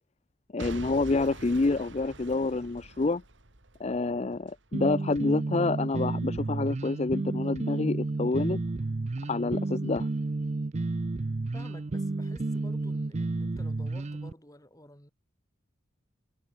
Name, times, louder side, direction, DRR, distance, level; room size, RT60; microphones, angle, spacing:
voice 1, 0.5-3.2 3.8-8.6 9.3-10.1, left 3 dB, 35° left, 0.5 m, -28 dB
Boom / Shatter / Crushing, 0.6-4.6 5.1-5.2, right 2 dB, 70° right, 2.8 m, -45 dB
sound 1, 4.7-14.3, right 2 dB, 35° right, 0.5 m, -31 dB
voice 2, 11.5-15.1, left 1 dB, 20° left, 4.4 m, -51 dB
head